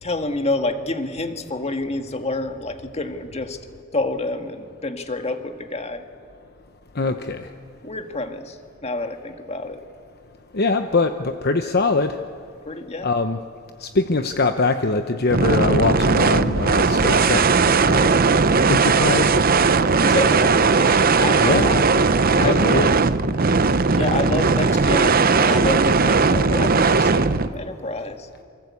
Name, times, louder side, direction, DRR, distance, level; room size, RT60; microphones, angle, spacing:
voice 1, 0.0-3.6 3.9-6.1 7.8-9.8 12.7-13.1 20.0-21.9 22.3-22.7 24.0-28.3, left 2 dB, 30° left, 6 dB, 1.8 m, -28 dB
voice 2, 7.0-7.5 10.5-12.2 13.0-13.4 13.8-17.6 17.9-18.1 18.7-19.4 21.4-22.1 22.4-22.9, left 3 dB, 50° left, 8 dB, 0.9 m, -22 dB
sound 1, 15.3-27.5, right 4 dB, 45° right, 0.8 m, -18 dB
28.5 x 24.0 x 8.4 m, 2.4 s
head